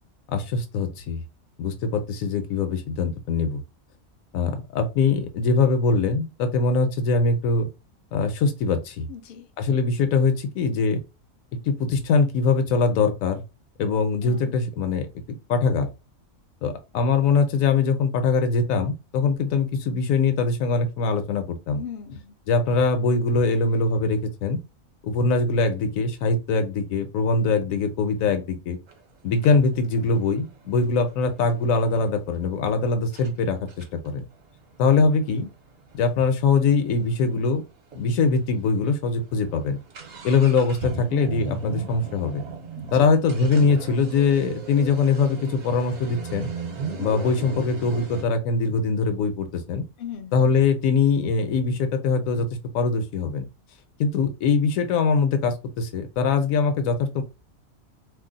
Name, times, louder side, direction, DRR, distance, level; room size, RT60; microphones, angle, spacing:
voice 1, 0.3-1.2 1.6-3.6 4.3-7.7 8.1-9.1 9.6-11.0 11.6-13.4 13.8-15.1 15.5-15.9 16.6-21.8 22.5-24.6 25.0-28.8 29.2-34.2 34.8-35.5 35.9-37.6 37.9-39.8 40.2-42.4 42.9-46.5 47.0-49.8 50.3-52.5 52.7-53.4 54.0-57.2, left 4 dB, 75° left, 1.1 m, -22 dB
voice 2, 9.1-9.5 14.2-14.5 21.7-22.3 42.8-43.1 50.0-50.5, left 8 dB, 60° left, 0.5 m, -38 dB
sound 1, 28.9-29.0 29.4-32.1 32.7-32.8 33.1-33.3 33.7-37.4 37.6-37.7 37.9-38.0 38.6-38.8 39.1-48.2, right 4 dB, 60° right, 1.0 m, -37 dB
2.6 x 2.1 x 3.8 m
omnidirectional pair, 1.4 m